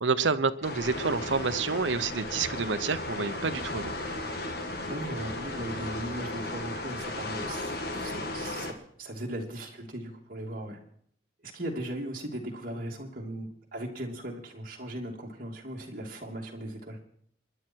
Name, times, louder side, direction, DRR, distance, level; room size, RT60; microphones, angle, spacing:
voice 1, 0.0-3.9, right 4 dB, 85° right, 13 dB, 0.9 m, -28 dB
sound 1, 0.6-8.7, left 2 dB, 55° left, 2.0 m, -35 dB
voice 2, 4.9-8.7 9.0-10.8 11.4-17.0, right 1 dB, 50° right, -1 dB, 2.9 m, -38 dB
27.5 x 11.0 x 4.6 m, 0.65 s
head